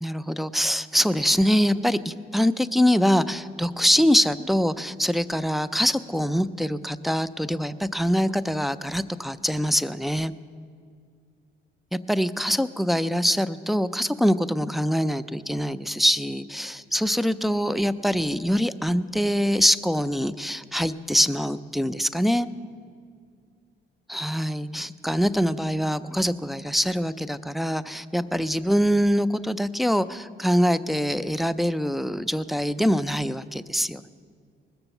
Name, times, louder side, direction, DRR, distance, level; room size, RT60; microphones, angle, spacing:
voice 1, 0.0-10.3 11.9-22.5 24.1-34.1, equal, ahead, 12 dB, 0.4 m, -24 dB
20.0 x 6.9 x 7.0 m, 2.2 s
cardioid pair, 90°, 20 cm